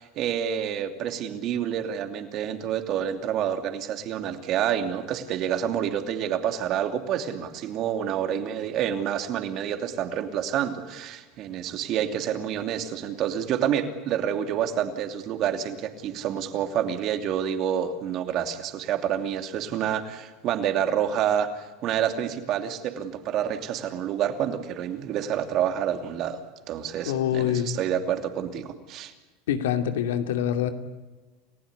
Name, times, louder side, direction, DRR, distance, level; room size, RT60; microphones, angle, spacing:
voice 1, 0.0-26.4 26.7-29.1, right 9 dB, 45° right, 7 dB, 2.7 m, -28 dB
voice 2, 27.1-27.8 29.5-30.7, left 10 dB, 90° left, 7 dB, 2.6 m, -25 dB
29.5 x 15.5 x 9.7 m, 1.2 s
supercardioid pair, 135°, 0 cm